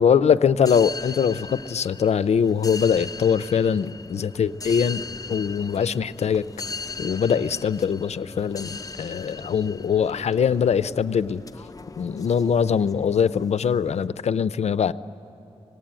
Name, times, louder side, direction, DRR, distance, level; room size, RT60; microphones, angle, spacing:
voice 1, 0.0-5.0 5.3-6.4 7.0-11.4 12.0-14.9, left 7 dB, 90° left, 15 dB, 0.5 m, -22 dB
sound 1, 0.6-14.1, left 3 dB, 35° left, 0.5 m, -38 dB
26.5 x 19.5 x 8.9 m, 2.8 s
wide cardioid pair, 90°, 11 cm